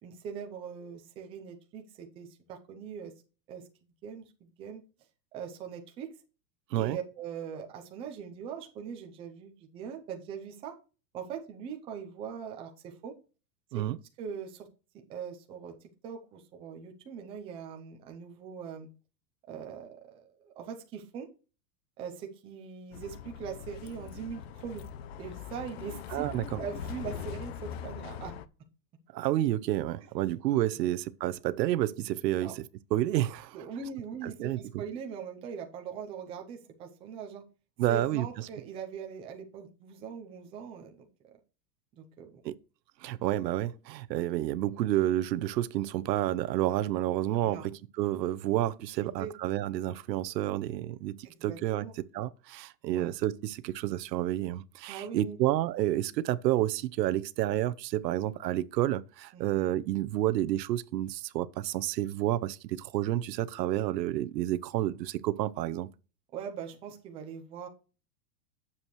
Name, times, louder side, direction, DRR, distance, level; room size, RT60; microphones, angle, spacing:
voice 1, 0.0-3.1 3.5-3.6 4.0-4.8 5.3-6.1 6.8-10.7 11.1-13.1 13.7-13.8 14.2-14.7 14.9-18.9 19.5-21.3 22.0-24.8 25.2-28.3 30.8-30.9 32.3-32.5 33.5-37.4 37.9-41.3 42.0-42.4 47.4-47.7 49.0-49.3 51.2-52.0 52.9-53.1 54.9-55.4 59.3-59.6 66.3-67.7, right 7 dB, 10° right, 0.5 m, -41 dB
Bus, 22.9-28.5, left 8 dB, 40° left, 0.5 m, -41 dB
voice 2, 26.1-26.6 29.1-32.7 32.9-33.6 34.2-34.8 37.8-38.5 42.4-42.5 43.0-65.9, right 14 dB, 80° right, 0.8 m, -30 dB
9.0 x 7.3 x 3.1 m
supercardioid pair, 170°, 49 cm